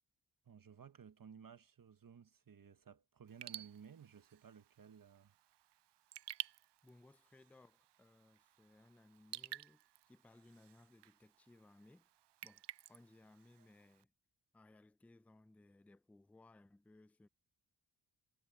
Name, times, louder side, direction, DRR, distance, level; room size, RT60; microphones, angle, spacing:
voice 1, 0.4-5.3, right 7 dB, 50° right, 1.3 m, -57 dB
Raindrop / Drip, 3.3-14.0, right 13 dB, 75° right, 0.5 m, -53 dB
voice 2, 6.8-12.1 12.4-14.1 14.5-17.3, left 2 dB, 5° left, 0.4 m, -64 dB
wide cardioid pair, 105°, 42 cm